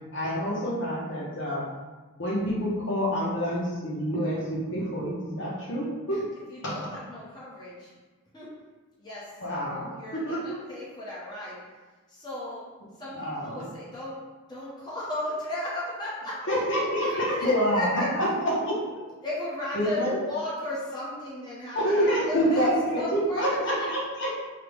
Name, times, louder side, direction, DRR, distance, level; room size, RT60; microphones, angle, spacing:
voice 1, 0.1-1.6 2.2-6.2 6.6-6.9 9.4-9.9 10.1-10.6 13.1-13.6 16.5-18.3 18.5-18.8 19.7-20.2 21.7-24.3, equal, 55° left, -5 dB, 0.9 m, -27 dB
voice 2, 6.1-7.9 8.3-8.5 9.0-9.3 9.7-11.6 12.1-12.7 13.0-14.2 14.5-16.4 17.0-18.1 19.2-22.7 23.0-23.9, left 1 dB, 20° left, -8 dB, 1.0 m, -35 dB
5.6 x 2.3 x 3.4 m, 1.3 s
head